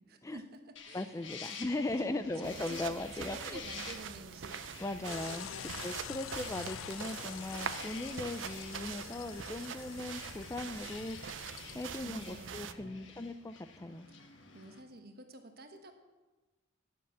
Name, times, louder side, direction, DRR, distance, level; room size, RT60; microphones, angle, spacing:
voice 1, 0.1-1.4 2.0-4.6 5.5-5.8 12.0-13.3 14.1-15.9, right 1 dB, 55° right, 6 dB, 1.3 m, -50 dB
cockatoos flying, 0.8-14.8, left 6 dB, 70° left, 1.4 m, -50 dB
voice 2, 0.9-3.6 4.8-5.5 5.8-11.2 11.7-14.1, left 2 dB, 15° left, 10 dB, 0.4 m, -38 dB
sound 1, 2.4-12.7, right 7 dB, 75° right, 0.6 m, -44 dB
sound 2, 5.1-12.1, left 11 dB, 90° left, 0.3 m, -47 dB
9.6 x 7.5 x 8.0 m, 1.2 s
head